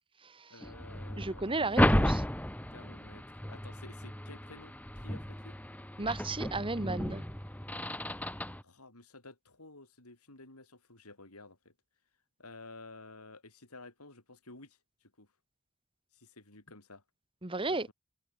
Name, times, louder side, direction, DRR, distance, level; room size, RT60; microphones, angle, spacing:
voice 1, 0.5-2.0 2.7-5.6 8.6-11.7 12.4-15.3 16.1-17.0 17.6-17.9, left 2 dB, 85° left, 6.5 m, -53 dB
sound 1, 0.6-8.6, equal, 5° left, 2.1 m, -33 dB
voice 2, 1.2-2.2 6.0-7.2 17.4-17.9, right 3 dB, 25° right, 1.4 m, -34 dB
head